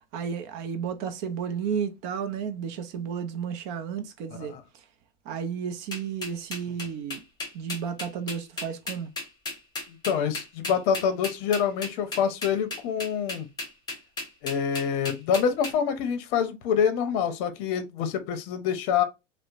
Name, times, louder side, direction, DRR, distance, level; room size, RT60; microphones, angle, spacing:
voice 1, 0.1-4.5 5.3-7.2 7.5-9.1, right 7 dB, 45° right, 0.5 m, -32 dB
sound 1, 5.9-15.7, left 2 dB, 10° left, 0.9 m, -34 dB
voice 2, 9.9-13.5 14.4-19.0, left 7 dB, 50° left, 0.6 m, -26 dB
2.8 x 2.0 x 2.4 m
supercardioid pair, 130°, 36 cm